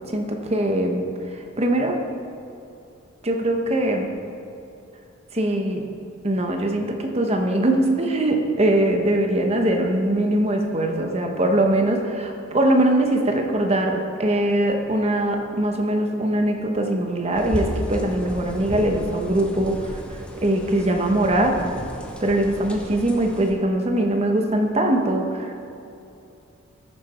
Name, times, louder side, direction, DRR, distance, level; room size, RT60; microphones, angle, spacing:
voice 1, 0.1-1.0 1.3-2.0 3.2-4.1 5.3-5.8 6.2-21.7 22.2-25.6, right 1 dB, 30° right, 3 dB, 0.9 m, -22 dB
sound 1, 17.3-23.5, equal, 5° left, 0.8 m, -33 dB
13.5 x 6.8 x 4.2 m, 2.7 s
head